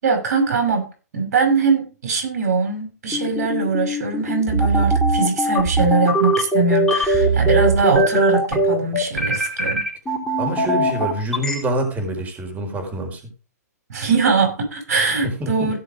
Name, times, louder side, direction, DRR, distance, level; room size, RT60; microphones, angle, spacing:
voice 1, 0.0-9.8 13.9-15.8, right 4 dB, 70° right, 4 dB, 6.2 m, -21 dB
sound 1, 3.1-11.5, right 1 dB, 5° left, 4.7 m, -20 dB
voice 2, 10.4-13.2 15.2-15.7, right 1 dB, 15° right, 4 dB, 4.4 m, -26 dB
16.5 x 5.7 x 5.0 m, 0.34 s
hypercardioid pair, 140°, 9 cm